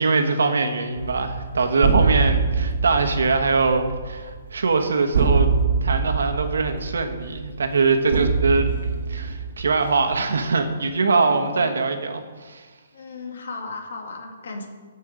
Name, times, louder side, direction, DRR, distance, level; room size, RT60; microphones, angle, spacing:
voice 1, 0.0-8.8 9.1-12.7, right 4 dB, 85° right, 6 dB, 1.3 m, -22 dB
sound 1, 1.0-10.4, right 5 dB, 65° right, 1.2 m, -24 dB
voice 2, 11.1-11.7 12.9-14.7, left 3 dB, 70° left, 3 dB, 2.0 m, -36 dB
13.5 x 5.5 x 5.1 m, 1.4 s
hypercardioid pair, 160°, 0 cm